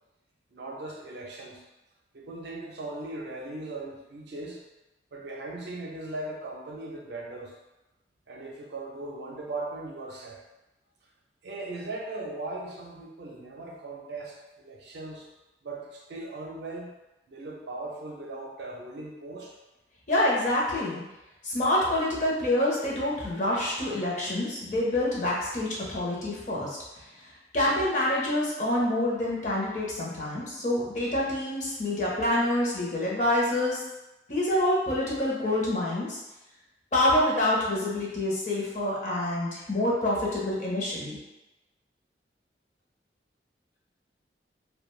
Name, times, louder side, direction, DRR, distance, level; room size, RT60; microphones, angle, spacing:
voice 1, 0.5-1.6 2.1-4.6 5.1-7.6 8.3-10.4 11.4-15.3 15.6-16.9 17.3-19.6, right 2 dB, 70° right, -1 dB, 0.5 m, -38 dB
voice 2, 20.1-21.0 21.4-33.8 34.3-36.2 36.9-41.2, left 1 dB, 40° left, -5 dB, 0.7 m, -27 dB
2.4 x 2.2 x 3.1 m, 0.99 s
head